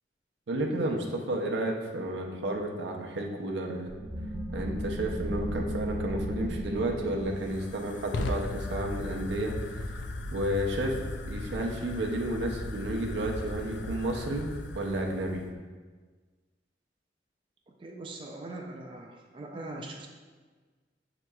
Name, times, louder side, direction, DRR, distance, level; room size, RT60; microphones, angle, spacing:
voice 1, 0.5-3.9 4.5-10.0 10.3-10.9 11.3-14.5 14.7-15.4, right 1 dB, 85° right, 1 dB, 0.5 m, -32 dB
sound 1, 3.9-9.2, equal, 45° right, 0.7 m, -36 dB
Fire, 6.6-15.5, left 2 dB, 70° left, 0.3 m, -37 dB
voice 2, 17.7-20.1, right 2 dB, 30° right, 0 dB, 0.3 m, -41 dB
6.2 x 2.9 x 2.2 m, 1.4 s
head